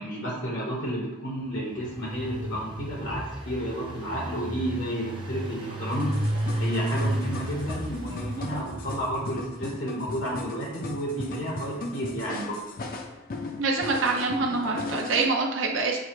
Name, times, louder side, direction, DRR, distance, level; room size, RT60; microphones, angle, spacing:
voice 1, 0.0-6.1 6.6-12.6, equal, 75° left, -3 dB, 1.1 m, -31 dB
Engine, 1.4-9.5, right 1 dB, 25° right, 0.5 m, -33 dB
sound 1, 5.9-15.3, left 3 dB, 45° left, 0.4 m, -37 dB
voice 2, 13.6-16.0, right 3 dB, 80° right, 1 dB, 0.6 m, -25 dB
6.3 x 2.4 x 3.0 m, 0.98 s
head